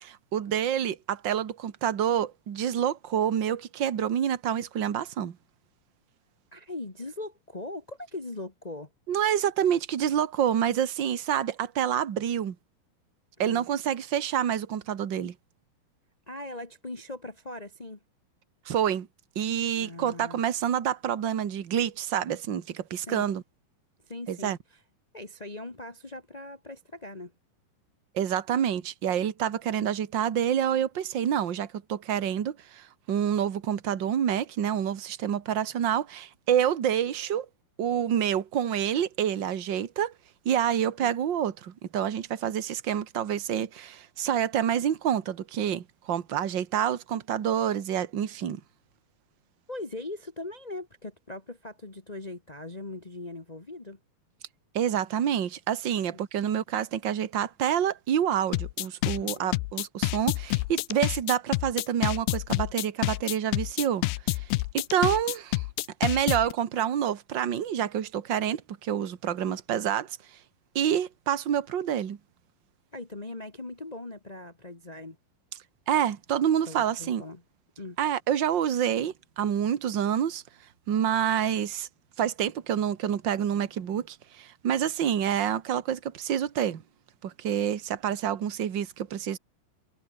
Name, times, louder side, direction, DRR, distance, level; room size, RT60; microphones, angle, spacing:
voice 1, 0.3-5.4 9.1-12.5 13.4-15.3 18.6-19.1 19.3-23.4 24.3-24.6 28.1-37.5 37.8-40.1 40.4-48.6 54.7-64.4 64.7-65.6 66.0-70.2 70.7-72.2 75.9-77.2 78.0-80.4 80.9-81.9 82.2-86.8 87.2-89.4, right 9 dB, 50° right, 1.3 m, -27 dB
voice 2, 6.5-8.9 13.4-13.6 16.3-18.0 19.8-20.4 23.0-23.3 24.0-24.8 25.1-27.3 41.0-41.1 49.7-54.0 59.2-59.5 72.9-75.2 76.7-77.4 77.8-78.0, left 2 dB, 30° left, 0.7 m, -40 dB
sound 1, 58.5-66.5, left 18 dB, 85° left, 2.7 m, -28 dB
omnidirectional pair, 4.3 m